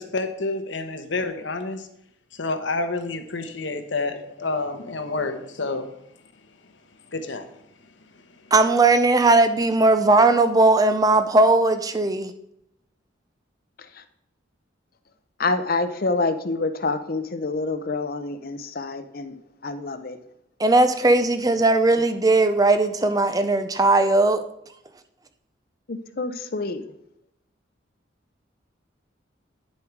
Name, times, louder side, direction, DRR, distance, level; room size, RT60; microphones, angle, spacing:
voice 1, 0.0-1.9 2.4-5.9 7.1-7.5, left 3 dB, 70° left, 7 dB, 1.1 m, -28 dB
voice 2, 8.5-12.3 20.6-24.4, right 2 dB, 20° right, 9 dB, 0.6 m, -18 dB
voice 3, 15.4-19.3 19.6-20.2 25.9-26.8, left 3 dB, 50° left, 10 dB, 0.8 m, -27 dB
10.5 x 7.2 x 4.7 m, 0.77 s
head